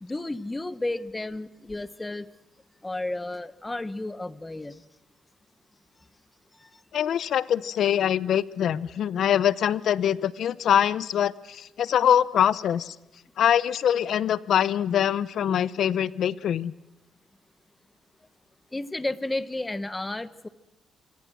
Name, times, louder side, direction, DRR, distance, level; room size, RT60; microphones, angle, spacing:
voice 1, 0.0-2.3 2.8-4.8 18.7-20.5, left 2 dB, 15° left, 15 dB, 1.1 m, -32 dB
voice 2, 6.9-13.0 13.4-16.7, left 9 dB, 70° left, 19 dB, 0.8 m, -24 dB
27.0 x 23.5 x 6.2 m, 1.0 s
cardioid pair, 90°, 0 cm